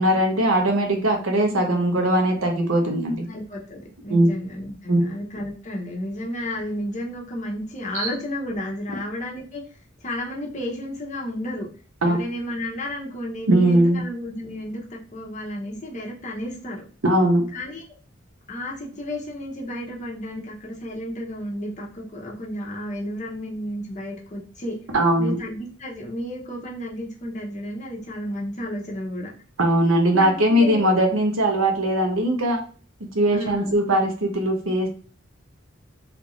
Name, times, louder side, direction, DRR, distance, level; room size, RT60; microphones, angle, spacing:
voice 1, 0.0-3.3 4.1-4.3 4.9-5.0 7.9-8.1 12.0-12.2 13.5-14.0 17.0-17.4 24.9-25.4 29.6-32.6 33.1-34.9, right 1 dB, 85° right, 3 dB, 0.9 m, -20 dB
voice 2, 3.2-9.6 10.0-11.7 12.0-16.8 17.5-17.8 18.5-24.8 25.2-29.3 30.1-30.9 33.3-33.8, left 1 dB, 35° left, -2 dB, 0.8 m, -32 dB
3.3 x 2.5 x 3.0 m, 0.41 s
head